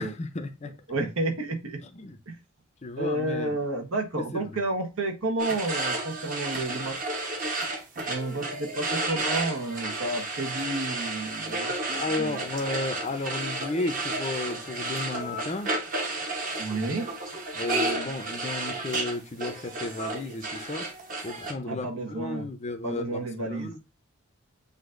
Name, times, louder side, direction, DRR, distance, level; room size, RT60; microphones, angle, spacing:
voice 1, 0.0-0.7 1.9-2.2 2.8-3.6 4.1-4.5 11.9-15.7 17.6-20.9 21.2-23.8, left 2 dB, 30° left, 0.6 m, -33 dB
voice 2, 0.9-1.8 2.3-2.4 3.0-7.0 8.1-12.4 16.6-17.1 21.6-22.4 22.8-23.7, right 2 dB, 80° right, 1.2 m, -31 dB
sound 1, 5.4-21.5, right 2 dB, 40° right, 1.0 m, -32 dB
8.0 x 2.7 x 2.5 m
head